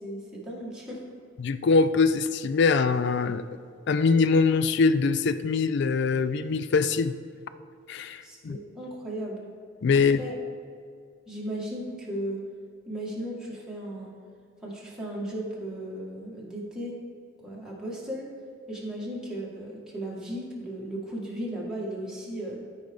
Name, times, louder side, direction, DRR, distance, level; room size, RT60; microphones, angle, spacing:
voice 1, 0.0-1.0 8.2-9.4 10.2-10.3 11.3-12.4 12.8-14.1 14.6-16.9 17.4-18.3 18.7-22.6, right 1 dB, 5° right, -5 dB, 1.7 m, -36 dB
voice 2, 1.4-3.4 3.9-7.2 7.9-8.6 9.8-10.2, left 4 dB, 65° left, 13 dB, 0.4 m, -23 dB
13.0 x 4.9 x 3.6 m, 2.2 s
head